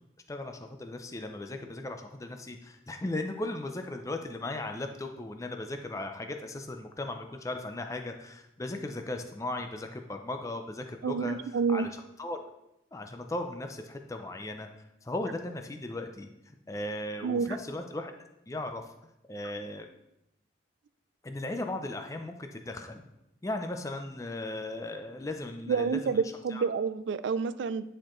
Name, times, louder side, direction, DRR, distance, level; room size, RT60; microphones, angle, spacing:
voice 1, 0.3-11.9 12.2-12.4 12.9-14.7 15.0-18.1 18.5-18.9 19.3-19.9 21.2-23.0 23.4-26.2 26.5-26.6, left 2 dB, 15° left, 5 dB, 0.4 m, -37 dB
voice 2, 11.0-11.9 17.2-17.6 25.7-27.8, right 5 dB, 80° right, 14 dB, 0.4 m, -29 dB
9.8 x 4.3 x 3.1 m, 0.85 s
head